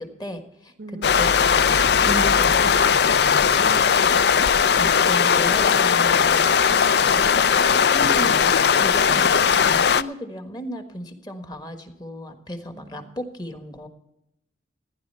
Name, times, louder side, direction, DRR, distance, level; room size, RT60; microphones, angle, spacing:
voice 1, 0.0-3.7 4.8-13.9, equal, 20° left, 1.4 m, -35 dB
voice 2, 0.8-1.3 3.6-4.1 4.8-4.9 6.7-7.3 12.7-13.2, right 2 dB, 50° right, 0.6 m, -42 dB
sound 1, 1.0-10.0, left 7 dB, 60° left, 0.4 m, -18 dB
15.5 x 10.5 x 5.6 m
head